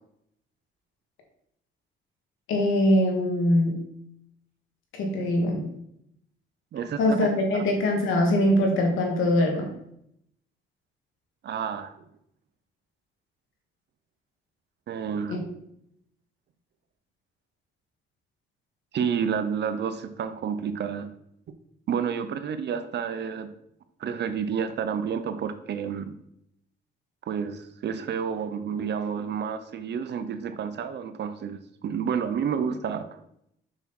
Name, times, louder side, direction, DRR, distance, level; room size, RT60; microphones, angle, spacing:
voice 1, 2.5-3.8 4.9-5.7 7.0-9.7 15.3-15.4, left 1 dB, 85° left, 2 dB, 2.1 m, -22 dB
voice 2, 6.7-7.6 11.4-11.9 14.9-15.4 18.9-21.1 21.9-23.5 24.0-26.1 27.3-33.2, right 7 dB, 60° right, 10 dB, 0.9 m, -30 dB
6.5 x 6.1 x 4.3 m, 0.74 s
cardioid pair, 90°, 20 cm